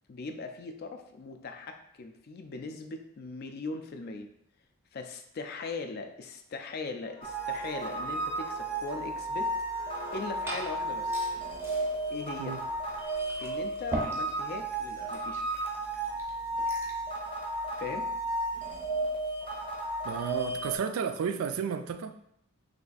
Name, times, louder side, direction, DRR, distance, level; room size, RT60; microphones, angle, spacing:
voice 1, 0.1-4.3 4.9-9.5 10.1-11.2 12.1-12.6 13.4-15.4 17.8-18.1, left 3 dB, 45° left, 6 dB, 0.3 m, -39 dB
sound 1, 7.0-14.5 14.9-15.2, left 3 dB, 70° left, 0.7 m, -49 dB
sound 2, 7.2-20.8, right 2 dB, 20° left, 0.8 m, -33 dB
Liquid, 10.0-17.0, right 1 dB, 10° right, 0.6 m, -42 dB
voice 2, 20.0-22.2, right 6 dB, 70° right, 9 dB, 0.3 m, -32 dB
3.3 x 2.5 x 3.9 m, 0.72 s
head